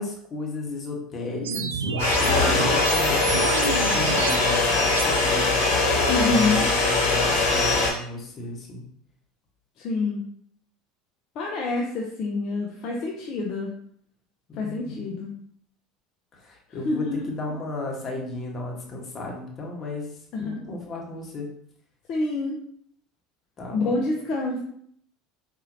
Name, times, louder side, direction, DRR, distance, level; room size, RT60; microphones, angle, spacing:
voice 1, 0.0-5.5 6.2-8.8 14.5-15.2 16.4-20.1 20.4-21.5 23.6-24.0, left 2 dB, 35° left, -1 dB, 1.2 m, -34 dB
sound 1, 1.4-5.0, right 5 dB, 90° right, 0.4 m, -29 dB
sound 2, 2.0-7.9, left 3 dB, 75° left, 1.3 m, -22 dB
voice 2, 6.1-6.7 9.8-10.2 11.4-13.7 14.6-15.3 16.8-17.5 20.3-20.6 22.1-22.6 23.7-24.6, left 3 dB, 55° left, -1 dB, 0.6 m, -27 dB
4.2 x 2.7 x 2.6 m, 0.65 s
hypercardioid pair, 80°, 0 cm